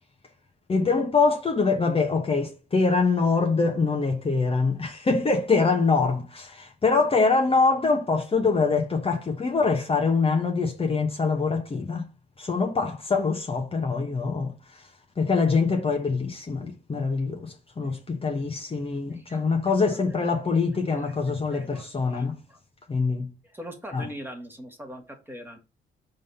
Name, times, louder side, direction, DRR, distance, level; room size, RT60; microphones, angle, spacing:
voice 1, 0.7-12.0 12.4-14.8 15.2-22.4 22.9-23.3 23.9-24.1, left 4 dB, 30° left, 1.1 m, -24 dB
voice 2, 19.1-20.2 20.9-21.2 21.5-22.6 23.4-25.6, equal, 10° right, 2.0 m, -43 dB
5.2 x 3.9 x 5.4 m
cardioid pair, 90°, 20 cm